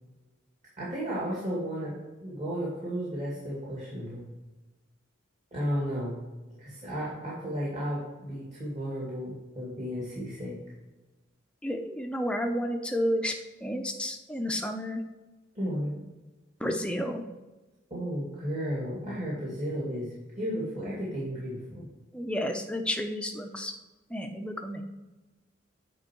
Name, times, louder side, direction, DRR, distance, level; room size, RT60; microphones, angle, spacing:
voice 1, 0.8-4.2 5.5-6.2 6.6-10.6 15.5-15.9 17.9-21.9, equal, 35° right, -7 dB, 2.3 m, -33 dB
voice 2, 11.6-13.3 13.6-15.0 16.6-17.2 22.1-23.7 24.1-24.8, equal, 5° left, 4 dB, 0.6 m, -31 dB
9.5 x 4.6 x 4.5 m, 1.1 s
head